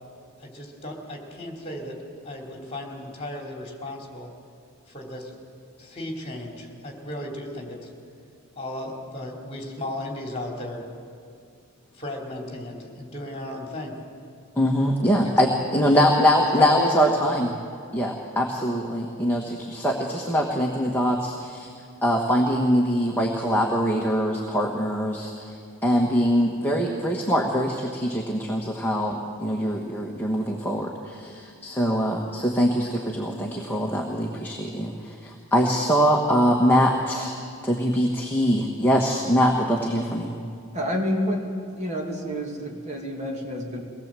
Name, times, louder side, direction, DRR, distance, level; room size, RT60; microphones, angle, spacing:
voice 1, 0.4-4.3 4.9-5.3 5.8-7.9 8.5-10.8 12.0-14.0 15.2-15.3 15.7-17.8, left 1 dB, 25° left, 0 dB, 3.2 m, -35 dB
voice 2, 14.6-17.5 17.9-21.7 22.0-25.5 25.8-37.4 37.6-40.3, equal, 10° left, -1 dB, 1.4 m, -23 dB
voice 3, 40.7-41.4 41.7-43.8, equal, 30° right, -1 dB, 2.6 m, -28 dB
23.0 x 19.0 x 7.6 m, 2.3 s
head